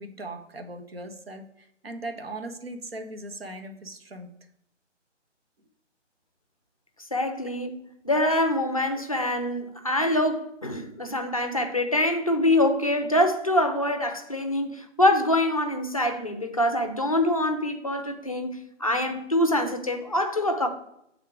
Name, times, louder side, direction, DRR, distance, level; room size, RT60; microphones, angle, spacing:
voice 1, 0.0-4.3, right 2 dB, 55° right, 1.0 m, -39 dB
voice 2, 7.1-7.7 8.0-20.7, left 1 dB, 30° left, 0.5 m, -25 dB
7.5 x 3.7 x 4.8 m
figure-of-eight pair, 150°, 37 cm